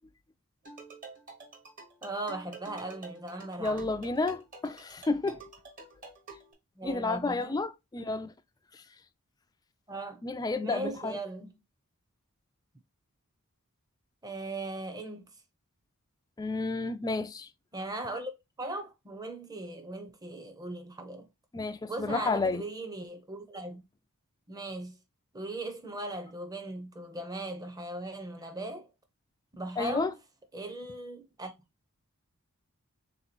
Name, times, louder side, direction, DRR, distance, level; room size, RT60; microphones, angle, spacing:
sound 1, 0.6-6.5, right 3 dB, 40° right, 1.1 m, -49 dB
voice 1, 2.0-4.0 6.8-7.6 9.9-10.2 10.6-11.6 14.2-15.3 17.7-21.3 21.9-23.8 24.5-25.0 25.3-28.9 29.5-30.2 30.5-31.5, right 2 dB, 15° right, 0.7 m, -38 dB
voice 2, 3.6-5.4 6.8-8.3 8.7-8.8 10.2-11.2 16.4-17.5 21.5-22.6 29.8-30.1, left 3 dB, 15° left, 0.3 m, -31 dB
3.5 x 2.9 x 4.1 m
head